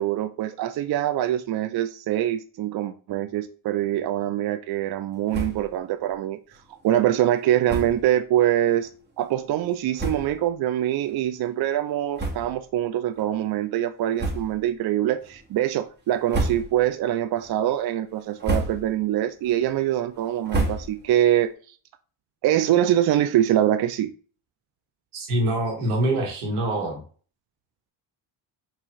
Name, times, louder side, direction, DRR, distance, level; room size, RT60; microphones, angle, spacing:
voice 1, 0.0-6.4 6.8-8.9 9.2-21.8 22.4-24.1, right 12 dB, 50° right, 10 dB, 0.5 m, -24 dB
sound 1, 5.3-5.8 6.1-6.2 6.5-6.6 7.6-8.1 8.8-8.9 9.6-9.7 9.9-10.5 11.0-11.2 12.1-12.8 13.1-13.3 14.1-14.7 15.2-15.6 16.1-17.0 17.4-17.8 18.2-19.0 19.4-21.2, right 2 dB, 20° right, 1.5 m, -30 dB
voice 2, 25.1-27.0, right 1 dB, 85° right, 1 dB, 1.5 m, -25 dB
4.5 x 2.7 x 3.0 m, 0.39 s
supercardioid pair, 65°, 49 cm